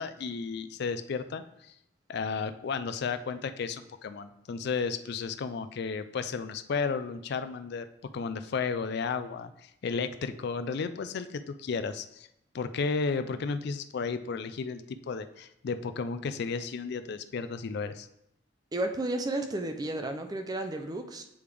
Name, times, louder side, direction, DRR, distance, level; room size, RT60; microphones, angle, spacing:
voice 1, 0.0-1.7 2.1-7.9 8.1-12.3 12.5-18.1, left 5 dB, 55° left, 11 dB, 0.3 m, -33 dB
voice 2, 18.7-21.2, right 2 dB, 20° right, 6 dB, 0.4 m, -32 dB
8.5 x 3.3 x 3.4 m, 0.79 s
head